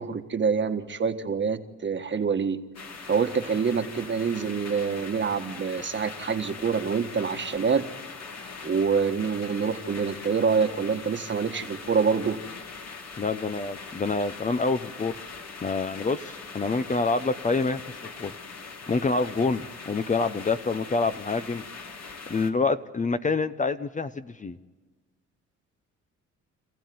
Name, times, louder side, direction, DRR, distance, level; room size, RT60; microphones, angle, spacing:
voice 1, 0.0-2.6 3.1-7.8 8.6-12.4, right 5 dB, 40° right, 7 dB, 1.5 m, -26 dB
sound 1, 2.7-22.5, left 4 dB, 60° left, 2.5 m, -41 dB
voice 2, 13.2-15.1 15.6-17.8 18.2-18.3 18.9-21.6 22.3-24.6, left 3 dB, 25° left, 10 dB, 0.8 m, -27 dB
27.0 x 15.0 x 9.4 m, 1.3 s
cardioid pair, 90°, 30 cm